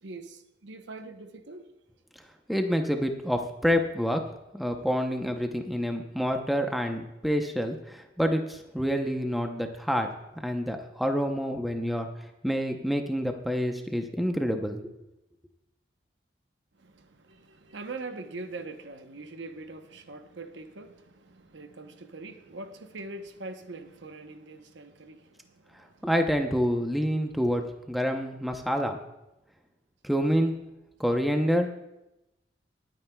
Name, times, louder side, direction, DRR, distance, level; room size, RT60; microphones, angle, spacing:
voice 1, 0.0-1.7 16.8-26.1, right 3 dB, 85° right, 0.9 m, -43 dB
voice 2, 2.5-4.2 4.5-10.1 10.4-12.1 12.4-14.8 26.0-29.0 30.0-30.6 31.0-31.7, equal, ahead, 0.7 m, -27 dB
21.5 x 8.9 x 2.3 m
head